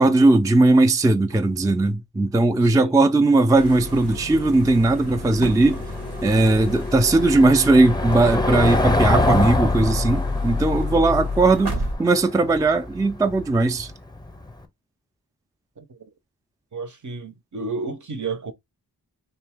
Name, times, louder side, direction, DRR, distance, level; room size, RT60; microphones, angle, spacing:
voice 1, 0.0-5.8 6.2-13.9, right 2 dB, 10° right, 0.4 m, -18 dB
voice 2, 2.6-2.9 15.8-16.1 16.7-18.5, right 4 dB, 50° right, 0.7 m, -32 dB
sound 1, 3.5-11.9, left 2 dB, 85° right, 1.2 m, -29 dB
Car passing by / Engine, 3.8-14.5, left 2 dB, 10° left, 0.7 m, -27 dB
3.4 x 2.7 x 3.5 m
wide cardioid pair, 45°, 39 cm